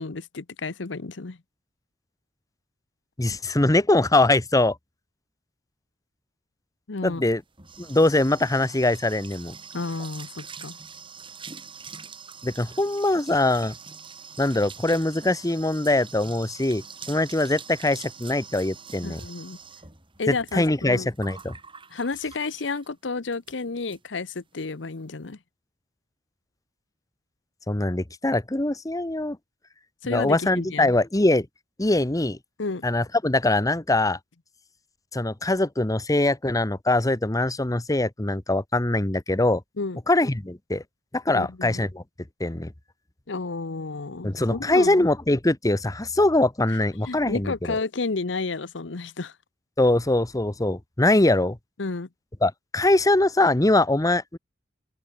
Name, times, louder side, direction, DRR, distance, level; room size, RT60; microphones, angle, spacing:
voice 1, 0.0-1.4 6.9-7.2 9.7-10.8 19.0-19.6 20.2-21.1 21.9-25.4 30.0-30.9 32.6-32.9 39.8-40.0 41.3-41.8 43.3-45.0 47.1-49.3 51.8-52.1, left 3 dB, 75° left, 0.9 m, -31 dB
voice 2, 3.2-4.8 7.0-7.4 7.8-9.5 12.4-13.7 14.4-19.2 20.3-21.6 27.7-29.4 30.1-31.5 31.8-32.4 32.8-34.2 35.1-39.6 40.1-40.8 41.1-42.0 42.4-42.7 44.2-47.8 49.8-51.6 52.4-54.4, left 2 dB, 20° left, 1.0 m, -22 dB
sound 1, 7.2-22.9 23.3-23.6 23.9-24.0 24.3-24.7, right 6 dB, 30° right, 4.8 m, -44 dB
open air
head